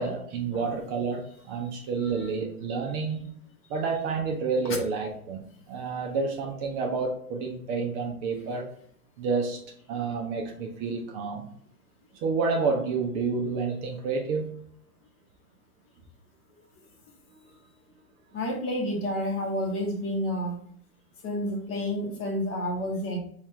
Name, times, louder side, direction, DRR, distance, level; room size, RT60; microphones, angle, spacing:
voice 1, 0.0-3.2 3.7-8.7 9.2-9.6 9.9-11.4 12.2-14.5, right 4 dB, 35° right, 1 dB, 0.6 m, -29 dB
voice 2, 18.3-20.6 21.2-23.2, equal, 30° left, 1 dB, 0.9 m, -30 dB
4.2 x 2.4 x 3.2 m, 0.66 s
hypercardioid pair, 125°, 46 cm